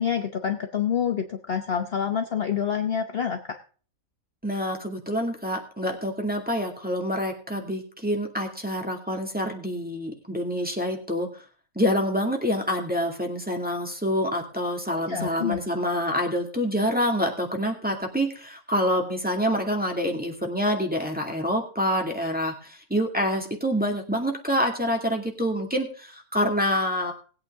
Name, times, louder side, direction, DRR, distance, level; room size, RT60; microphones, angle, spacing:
voice 1, 0.0-3.6 14.9-15.6, left 8 dB, 45° left, 6 dB, 1.0 m, -27 dB
voice 2, 4.4-11.3 11.8-27.1, equal, 5° right, 0 dB, 2.2 m, -27 dB
19.5 x 8.8 x 3.7 m, 0.40 s
omnidirectional pair, 1.6 m